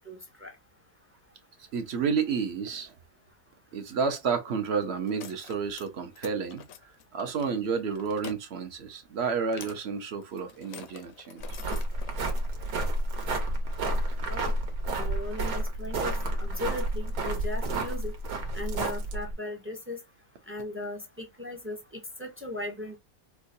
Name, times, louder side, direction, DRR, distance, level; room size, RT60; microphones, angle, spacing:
voice 1, 0.1-0.5 14.3-14.5 15.0-18.2 18.5-20.0 20.5-23.0, left 1 dB, 15° right, 0.4 m, -38 dB
voice 2, 1.7-2.9 3.7-11.4, right 5 dB, 60° right, 0.8 m, -31 dB
sound 1, 5.0-5.9 6.1-7.5 7.9-8.4 9.5-9.8 10.2-12.1, left 8 dB, 70° left, 1.0 m, -46 dB
sound 2, 11.4-19.3, right 1 dB, 80° right, 1.4 m, -30 dB
4.6 x 2.1 x 2.6 m
omnidirectional pair, 1.5 m